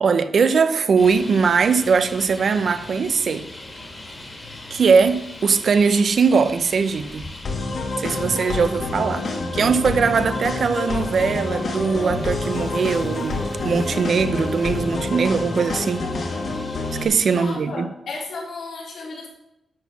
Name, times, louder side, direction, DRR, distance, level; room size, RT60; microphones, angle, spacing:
voice 1, 0.0-3.4 4.7-7.2 8.0-9.3 9.5-16.1 17.0-17.9, right 5 dB, 50° right, 0.7 m, -20 dB
Traffic noise roadway noise, 1.0-17.6, left 1 dB, 25° left, 2.0 m, -41 dB
sound 1, 7.4-17.0, left 3 dB, 55° left, 1.8 m, -27 dB
sound 2, 10.5-15.8, equal, 10° left, 1.9 m, -42 dB
voice 2, 17.3-19.3, left 3 dB, 80° left, 3.7 m, -34 dB
11.5 x 4.2 x 7.0 m
wide cardioid pair, 160°, 0 cm